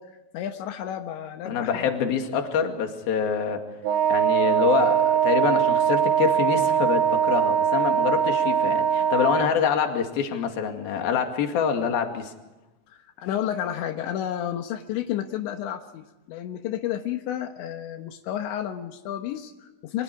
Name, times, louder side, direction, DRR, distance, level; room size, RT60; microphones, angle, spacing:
voice 1, 0.0-2.2 12.9-20.0, left 10 dB, 80° left, 5 dB, 3.5 m, -32 dB
voice 2, 1.5-3.6 4.1-12.3, left 7 dB, 60° left, 4 dB, 3.9 m, -26 dB
Wind instrument woodwind instrument, 3.8-9.6, right 8 dB, 85° right, 4.1 m, -22 dB
29.5 x 25.5 x 4.8 m, 1.0 s
omnidirectional pair, 5.2 m